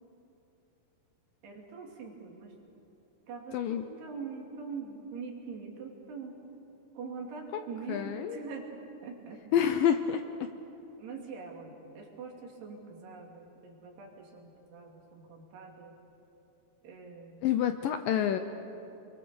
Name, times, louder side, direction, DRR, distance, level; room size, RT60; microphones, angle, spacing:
voice 1, 1.4-2.5 3.3-6.4 6.9-8.7 9.0-9.6 11.0-16.0 16.8-17.5, right 5 dB, 80° right, 0 dB, 4.8 m, -43 dB
voice 2, 7.9-8.4 9.5-10.5 17.4-18.4, left 9 dB, 75° left, 8 dB, 2.1 m, -28 dB
28.0 x 22.5 x 7.0 m, 2.9 s
omnidirectional pair, 4.7 m